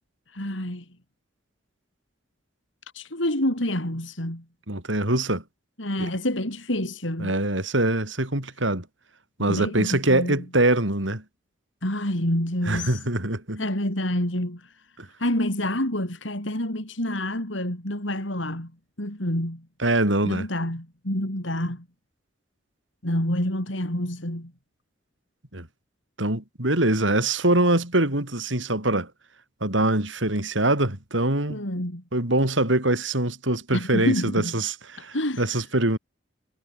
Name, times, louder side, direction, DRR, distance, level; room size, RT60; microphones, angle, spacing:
voice 1, 0.3-0.9 2.9-4.4 5.8-7.3 9.4-10.4 11.8-13.0 13.6-14.7 15.2-18.7 19.0-19.7 20.2-21.9 23.0-24.5 31.5-32.0 33.7-34.5 35.1-35.6, left 1 dB, 85° left, 6.9 m, -28 dB
voice 2, 4.7-5.4 6.0-6.1 7.2-8.8 9.4-11.2 12.7-13.6 15.0-15.1 19.8-20.5 25.5-25.7 26.2-29.1 29.6-31.6 32.1-36.0, right 1 dB, 85° right, 5.4 m, -23 dB
head